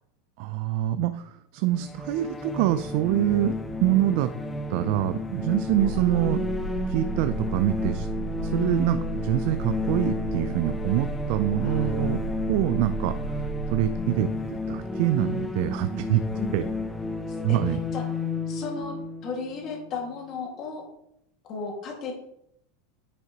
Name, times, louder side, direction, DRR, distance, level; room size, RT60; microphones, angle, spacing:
voice 1, 0.4-3.5 3.8-4.3 4.7-6.5 6.9-8.1 8.4-12.2 12.5-16.2 16.5-16.6 17.4-17.8, right 13 dB, 60° right, 11 dB, 0.3 m, -25 dB
sound 1, 1.7-20.3, left 3 dB, 10° left, 0.6 m, -32 dB
sound 2, 5.7-14.0, right 4 dB, 80° left, 0.9 m, -34 dB
voice 2, 11.6-12.1 13.9-14.2 16.4-16.7 17.3-18.0 18.5-19.0 19.2-20.8 21.4-22.1, left 4 dB, 35° left, 0 dB, 1.9 m, -35 dB
9.4 x 5.6 x 2.9 m, 0.79 s
supercardioid pair, 150°, 0 cm